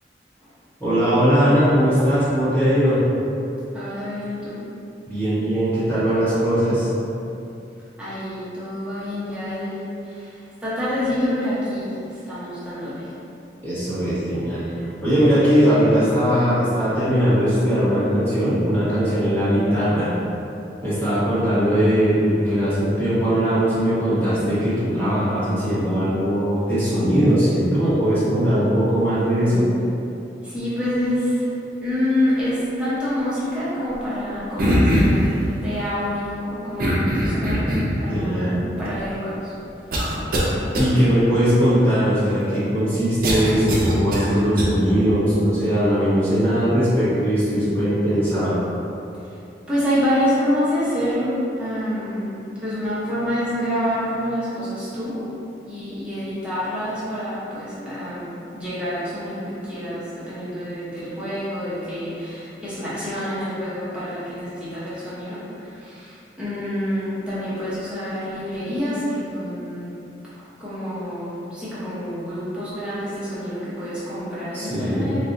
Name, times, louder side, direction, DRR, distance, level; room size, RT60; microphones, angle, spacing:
voice 1, 0.8-3.0 5.1-6.9 13.6-14.6 15.0-20.1 20.8-29.7 38.1-38.6 40.8-48.5 74.5-75.1, equal, 10° left, -13 dB, 1.1 m, -20 dB
voice 2, 3.7-4.6 8.0-12.0 12.3-13.1 30.4-31.5 31.8-35.3 35.6-39.5 49.7-52.3 52.6-55.2 55.7-69.9 70.6-75.3, equal, 5° right, -12 dB, 0.7 m, -27 dB
sound 1, 34.6-35.3 36.8-38.0 38.8-38.9 39.9-40.5 40.7-40.9 43.2-44.6, equal, 55° right, 0.5 m, -21 dB
4.1 x 2.3 x 2.5 m, 2.8 s
head